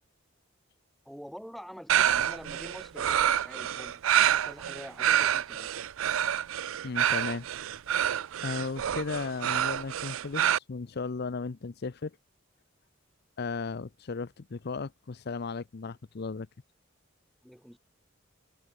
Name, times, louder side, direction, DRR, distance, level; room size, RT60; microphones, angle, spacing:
voice 1, 1.1-5.7 17.4-17.8, equal, ahead, 1.9 m, -46 dB
sound 1, 1.9-10.6, right 10 dB, 75° right, 0.5 m, -27 dB
voice 2, 6.8-7.5 8.4-12.2 13.4-16.5, left 4 dB, 50° left, 0.6 m, -35 dB
head